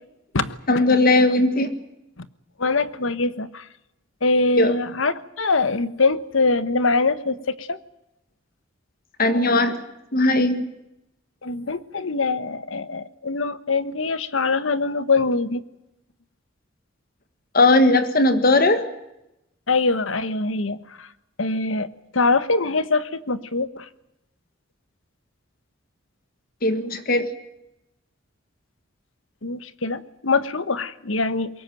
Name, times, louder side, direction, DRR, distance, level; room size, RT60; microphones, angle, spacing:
voice 1, 0.7-1.7 4.6-4.7 9.2-9.8 10.1-10.6 17.5-18.8 26.6-27.3, left 2 dB, 50° left, 10 dB, 1.7 m, -18 dB
voice 2, 2.6-3.6 4.2-7.8 11.4-15.6 19.7-21.1 21.4-21.9 22.1-23.9 29.4-31.5, left 3 dB, 85° left, 14 dB, 1.3 m, -23 dB
22.5 x 19.0 x 9.1 m, 0.89 s
head